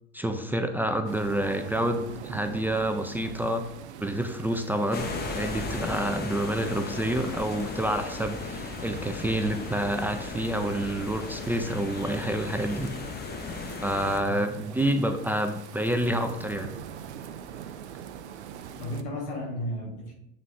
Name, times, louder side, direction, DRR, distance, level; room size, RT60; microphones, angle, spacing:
voice 1, 0.1-3.6 4.0-12.9 13.8-16.7, right 1 dB, 5° right, 6 dB, 0.4 m, -28 dB
sound 1, 1.0-19.0, right 9 dB, 90° right, 0.5 m, -44 dB
sound 2, 4.9-14.2, left 4 dB, 30° left, 1.1 m, -36 dB
voice 2, 14.0-14.6 18.8-20.1, left 1 dB, 90° left, 0 dB, 1.6 m, -35 dB
7.5 x 3.7 x 3.4 m, 0.82 s
hypercardioid pair, 85°, 33 cm